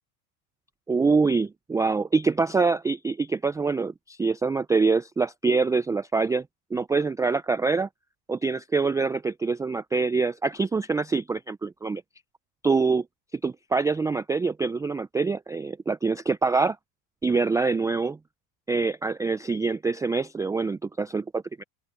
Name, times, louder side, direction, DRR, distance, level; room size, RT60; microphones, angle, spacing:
voice 1, 0.9-6.4 6.7-7.9 8.3-12.0 12.6-13.0 13.4-16.8 17.2-18.2 18.7-21.6, right 4 dB, 10° right, 0.4 m, -25 dB
open air
hypercardioid pair, 95°, 45 cm